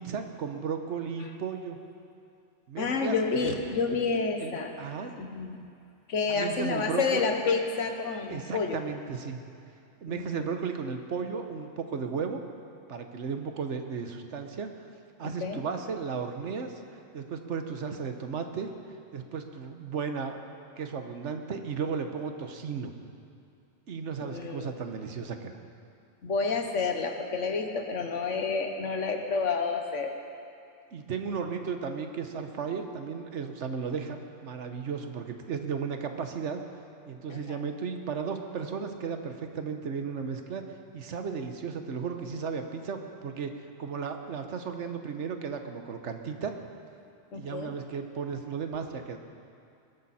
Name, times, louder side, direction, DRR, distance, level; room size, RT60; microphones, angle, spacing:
voice 1, 0.0-1.8 2.7-3.2 3.4-3.6 4.4-5.2 6.3-7.4 8.3-9.4 10.0-12.4 12.9-14.9 15.2-16.8 17.1-18.7 19.1-22.9 23.9-25.6 30.9-36.6 37.1-40.6 40.9-43.5 43.8-46.5 47.4-49.2, right 6 dB, 70° right, 6 dB, 1.3 m, -35 dB
voice 2, 2.8-4.7 5.2-5.6 6.1-8.8 10.1-10.5 15.2-15.6 24.2-24.7 26.2-30.1 37.3-37.6 47.3-47.7, left 4 dB, 70° left, 4 dB, 1.5 m, -29 dB
20.0 x 13.0 x 4.2 m, 2.5 s
omnidirectional pair, 1.3 m